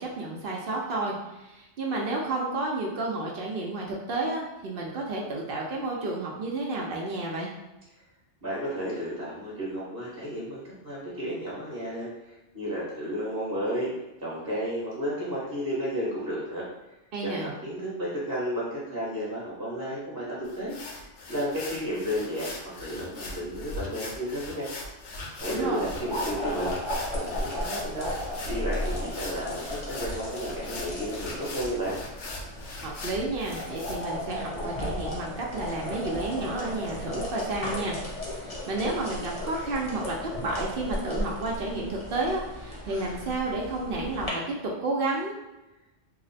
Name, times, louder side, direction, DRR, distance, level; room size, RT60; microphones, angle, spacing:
voice 1, 0.0-7.5 17.1-17.5 25.5-25.8 32.8-45.4, right 2 dB, 60° right, -2 dB, 0.7 m, -31 dB
voice 2, 8.4-12.1 12.5-13.9 14.2-16.6 17.2-20.8 21.3-24.7 25.4-26.7 27.1-28.1 28.4-32.0, equal, 20° right, -7 dB, 0.9 m, -32 dB
sound 1, 20.4-33.9, left 2 dB, 80° left, 0.9 m, -40 dB
sound 2, 25.4-44.3, left 1 dB, 30° left, 0.7 m, -35 dB
2.8 x 2.1 x 4.0 m, 1.0 s
omnidirectional pair, 1.2 m